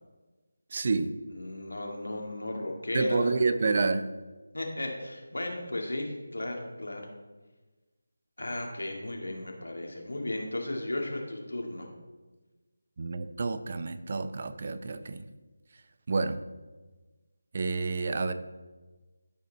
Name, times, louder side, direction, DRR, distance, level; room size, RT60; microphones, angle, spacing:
voice 1, 0.7-1.1 2.9-4.1 13.0-15.2 16.1-16.4 17.5-18.3, right 3 dB, 40° right, 11 dB, 0.6 m, -29 dB
voice 2, 1.3-3.4 4.5-7.1 8.4-11.9, left 1 dB, 80° left, 1 dB, 2.4 m, -35 dB
13.0 x 5.2 x 4.2 m, 1.2 s
figure-of-eight pair, 165°, 0 cm